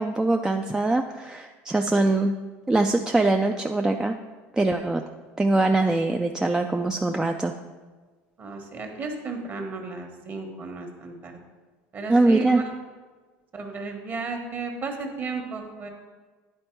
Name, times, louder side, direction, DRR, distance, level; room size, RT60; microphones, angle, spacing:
voice 1, 0.0-2.3 2.7-4.1 4.5-5.0 5.4-7.5 12.1-12.6, right 2 dB, 10° right, 4 dB, 0.3 m, -22 dB
voice 2, 8.4-11.4 11.9-12.7 13.5-15.9, right 4 dB, 30° right, 4 dB, 1.2 m, -34 dB
9.9 x 4.3 x 4.5 m, 1.3 s
supercardioid pair, 120°, 6 cm